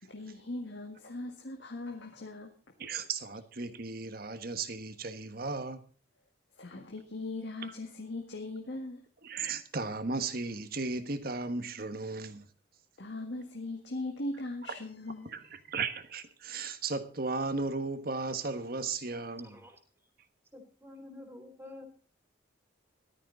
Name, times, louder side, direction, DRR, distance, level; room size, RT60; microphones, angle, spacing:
voice 1, 0.0-2.5 6.6-9.0 13.0-15.5, left 2 dB, 65° left, 1.9 m, -39 dB
voice 2, 2.8-5.9 9.2-12.5 14.7-14.8 15.2-19.5, right 3 dB, 50° right, 1.4 m, -35 dB
voice 3, 19.4-19.8 20.5-21.8, left 1 dB, 10° right, 3.2 m, -49 dB
14.5 x 13.0 x 4.0 m
head